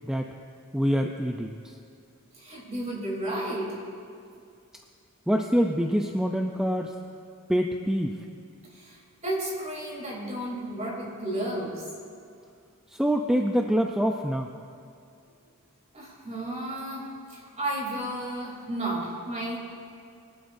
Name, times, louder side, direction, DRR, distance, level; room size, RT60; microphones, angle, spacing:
voice 1, 0.7-1.8 5.3-7.0 7.5-8.2 12.9-14.5, equal, 5° right, 2 dB, 0.5 m, -25 dB
voice 2, 2.4-3.8 8.7-9.0 9.2-11.8 15.9-19.6, right 1 dB, 35° right, -4 dB, 3.6 m, -33 dB
22.5 x 12.0 x 2.6 m, 2.4 s
head